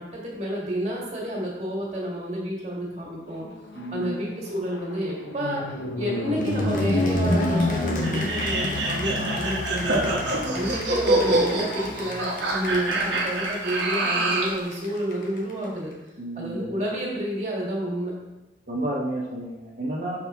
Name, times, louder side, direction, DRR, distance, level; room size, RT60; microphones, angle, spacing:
voice 1, 0.0-3.5 3.9-5.6 5.9-10.1 10.5-15.9 16.4-18.1, equal, 40° right, -3 dB, 1.7 m, -30 dB
Plane flyby, 3.4-12.9, left 1 dB, 85° left, 0.8 m, -29 dB
voice 2, 3.7-4.3 10.4-10.7 16.2-16.7 18.7-20.2, right 1 dB, 55° right, -7 dB, 0.9 m, -31 dB
Cheering / Applause, 6.4-15.9, left 2 dB, 45° left, 0.8 m, -37 dB
sound 1, 8.0-14.6, right 2 dB, 80° right, 1.2 m, -25 dB
5.9 x 4.9 x 3.5 m, 1.0 s
head